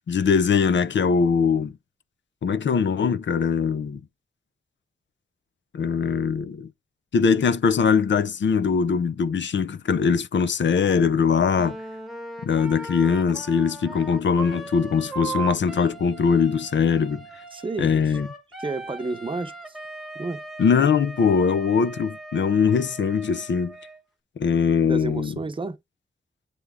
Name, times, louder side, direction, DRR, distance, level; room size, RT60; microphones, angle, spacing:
voice 1, 0.1-1.7 2.4-4.0 5.7-6.7 7.1-11.8 12.4-17.2 17.8-18.3 20.6-23.7 24.4-25.3, left 6 dB, 70° left, 0.7 m, -21 dB
Wind instrument woodwind instrument, 11.5-24.0, right 3 dB, ahead, 1.1 m, -38 dB
voice 2, 17.5-18.2 18.6-19.8 20.1-20.4 24.8-25.8, right 3 dB, 25° right, 0.8 m, -31 dB
8.1 x 3.4 x 3.6 m
wide cardioid pair, 165°, 20 cm